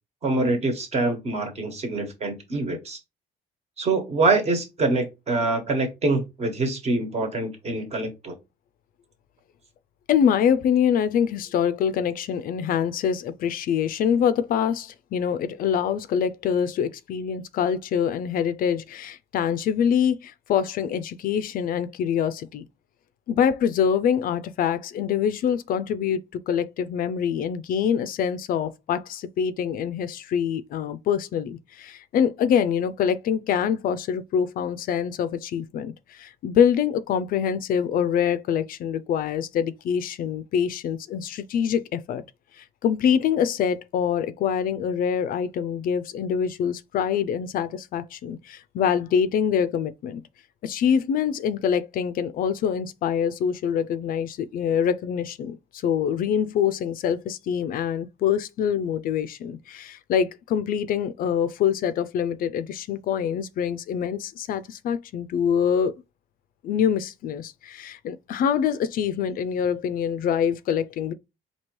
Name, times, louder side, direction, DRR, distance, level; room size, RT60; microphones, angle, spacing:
voice 1, 0.2-3.0 3.8-8.4, right 2 dB, 40° right, 1.3 m, -25 dB
voice 2, 10.1-22.6 23.3-26.2 26.5-42.2 42.6-50.2 50.6-65.9 66.6-71.1, left 8 dB, 55° left, 0.4 m, -25 dB
4.4 x 2.8 x 3.0 m
cardioid pair, 110°, 17 cm